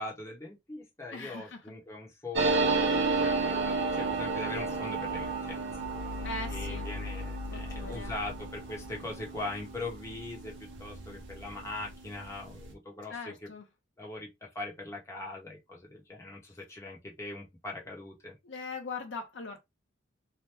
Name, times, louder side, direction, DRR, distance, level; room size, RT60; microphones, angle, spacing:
voice 1, 0.0-5.7 6.0-10.5 10.8-13.5 14.0-18.3, left 2 dB, 15° left, 0.9 m, -41 dB
voice 2, 1.1-1.7 6.2-6.9 7.5-8.1 13.1-13.6 18.4-19.6, left 3 dB, 65° left, 0.7 m, -40 dB
sound 1, 2.3-11.5 11.8-11.9 12.1-12.7, right 3 dB, 70° right, 0.7 m, -32 dB
2.9 x 2.1 x 3.3 m
head